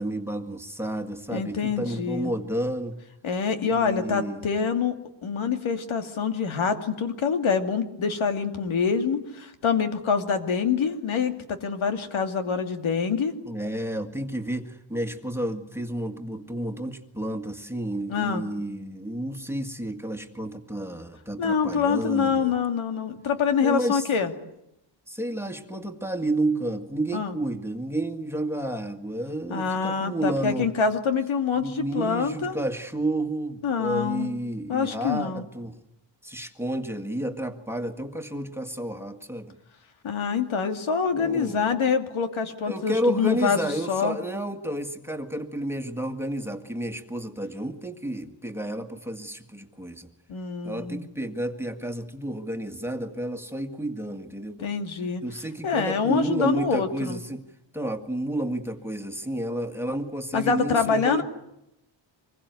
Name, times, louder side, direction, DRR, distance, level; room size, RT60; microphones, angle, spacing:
voice 1, 0.0-3.0 3.6-4.5 13.4-22.5 23.6-24.1 25.1-30.7 31.6-35.8 36.2-39.6 41.1-41.6 42.7-50.1 50.6-54.7 55.2-57.4 57.7-61.2, right 1 dB, 5° right, 5 dB, 1.8 m, -31 dB
voice 2, 1.3-2.3 3.2-5.0 5.2-13.3 18.1-18.5 21.4-24.3 27.1-27.4 29.5-32.6 33.6-34.3 34.7-35.4 40.0-43.6 43.9-44.2 50.3-51.1 54.6-55.2 55.6-57.2 60.3-61.2, left 6 dB, 85° left, 7 dB, 2.7 m, -25 dB
25.5 x 21.5 x 9.4 m, 0.84 s
wide cardioid pair, 150°, 46 cm